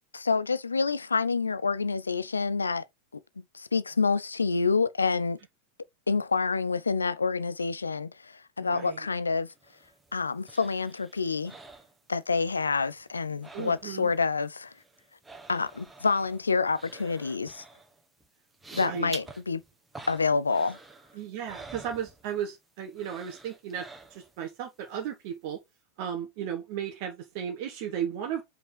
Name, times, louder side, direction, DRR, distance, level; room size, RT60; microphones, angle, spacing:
voice 1, 0.1-2.8 3.5-5.4 6.1-9.5 10.1-11.6 12.1-14.7 15.5-17.6 18.8-19.6 20.1-20.8, left 4 dB, 75° left, 0.5 m, -27 dB
voice 2, 8.6-9.1 13.5-14.1 18.7-19.1 21.1-25.6 26.0-28.4, right 9 dB, 45° right, 1.3 m, -35 dB
sound 1, 9.5-12.5 12.8-14.2 14.4-22.6 22.9-24.5 24.9-25.0, right 3 dB, 10° right, 1.5 m, -49 dB
5.5 x 5.1 x 4.5 m
figure-of-eight pair, 90°, 0 cm